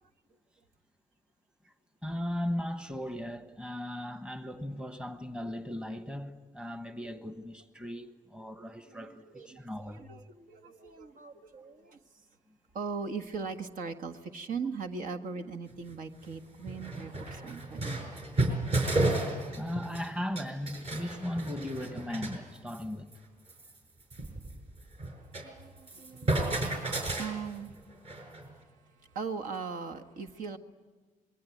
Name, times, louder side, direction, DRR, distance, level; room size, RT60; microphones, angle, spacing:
voice 1, 2.0-10.0 19.6-23.1, left 1 dB, 5° right, 1.2 m, -37 dB
voice 2, 8.8-12.0 12.7-18.1 25.3-28.0 28.3-30.6, right 5 dB, 70° right, 1.6 m, -40 dB
sound 1, 15.7-15.8 16.3-16.4 16.6-20.1 20.4-22.4 22.7-22.9 23.1-23.2 23.5-25.5 25.8-28.5, right 2 dB, 45° right, 5.3 m, -32 dB
27.0 x 22.5 x 9.4 m
cardioid pair, 155°, 14 cm